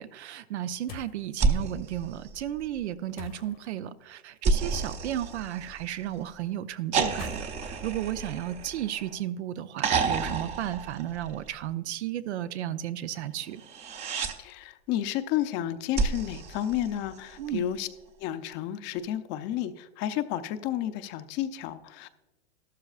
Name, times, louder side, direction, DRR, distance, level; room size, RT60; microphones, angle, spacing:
voice 1, 0.0-13.6 17.4-17.7, right 12 dB, 85° right, 13 dB, 0.7 m, -34 dB
sound 1, 0.9-1.3 3.2-3.7 4.7-5.3 7.0-8.9, left 9 dB, 60° left, 1.1 m, -46 dB
sound 2, 1.3-2.9 4.4-6.1 6.9-9.2 9.8-11.6 13.6-14.4 15.9-17.4 19.0-19.1, right 4 dB, 20° right, 0.6 m, -30 dB
voice 2, 14.4-17.9 18.2-22.1, left 11 dB, 35° left, 11 dB, 0.6 m, -31 dB
13.0 x 12.5 x 2.4 m, 1.1 s
supercardioid pair, 140°, 33 cm